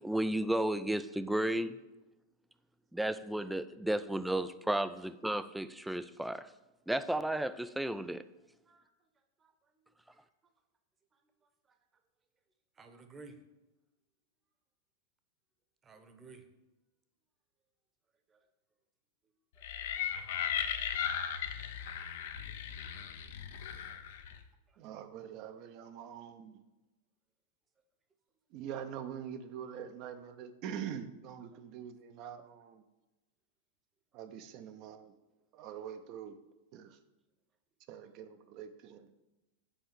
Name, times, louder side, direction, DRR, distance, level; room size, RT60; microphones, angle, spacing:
voice 1, 0.0-1.8 2.9-6.5 6.9-8.3, right 1 dB, 5° right, 13 dB, 0.4 m, -33 dB
voice 2, 12.8-13.4 15.8-16.4 18.3-18.4 21.9-22.0 22.5-22.6 31.5-31.6, right 4 dB, 20° right, 8 dB, 1.1 m, -54 dB
sound 1, 19.6-24.4, left 8 dB, 55° left, 0.8 m, -37 dB
voice 3, 24.8-26.6 28.5-32.8 34.1-35.1 35.5-36.4 36.7-37.0 37.9-39.1, right 8 dB, 40° right, 9 dB, 0.8 m, -44 dB
7.2 x 5.6 x 7.2 m, 1.0 s
figure-of-eight pair, 90°, 0 cm